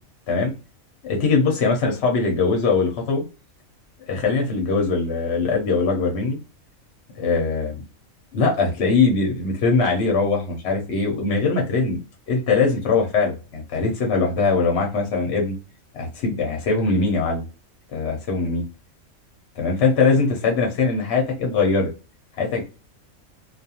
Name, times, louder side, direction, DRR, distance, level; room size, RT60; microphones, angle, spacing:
voice 1, 1.0-3.2 4.1-6.4 7.2-7.8 8.3-12.0 12.3-15.6 15.9-17.5 17.9-18.6 19.6-21.9 22.3-22.6, left 4 dB, 60° left, 1 dB, 0.8 m, -21 dB
2.4 x 2.3 x 2.7 m, 0.32 s
omnidirectional pair, 1.4 m